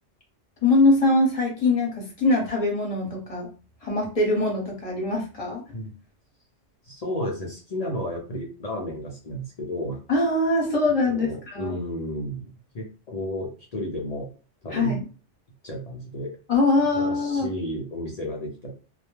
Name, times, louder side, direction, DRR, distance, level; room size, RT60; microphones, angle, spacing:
voice 1, 0.6-3.5 3.8-5.6 10.1-11.8 14.7-15.0 16.5-17.5, left 2 dB, 30° left, -2 dB, 1.0 m, -22 dB
voice 2, 6.8-10.0 11.1-12.4 12.7-14.3 14.6-15.0 15.6-16.3 16.9-18.7, equal, 50° left, -1 dB, 0.5 m, -32 dB
2.3 x 2.1 x 3.1 m, 0.35 s
omnidirectional pair, 1.2 m